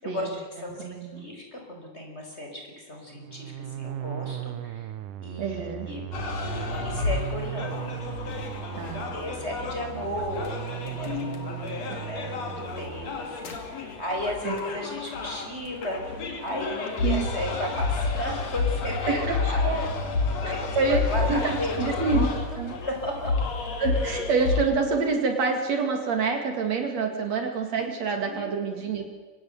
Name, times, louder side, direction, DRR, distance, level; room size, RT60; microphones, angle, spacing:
voice 1, 0.0-4.9 5.2-6.1 6.8-7.9 8.8-19.9 20.4-23.3 27.1-27.2 28.2-28.5, left 1 dB, 20° left, 1 dB, 5.2 m, -35 dB
voice 2, 0.8-1.3 5.4-5.9 8.7-9.1 14.4-14.6 17.0-17.3 19.1-19.8 20.4-22.3 22.6-22.8 23.8-29.0, right 4 dB, 60° right, 5 dB, 3.3 m, -27 dB
sound 1, 3.1-13.1, right 12 dB, 85° right, 2.4 m, -37 dB
sound 2, 6.1-24.6, left 4 dB, 55° left, 3.7 m, -30 dB
25.0 x 19.0 x 8.0 m, 1.4 s
omnidirectional pair, 3.5 m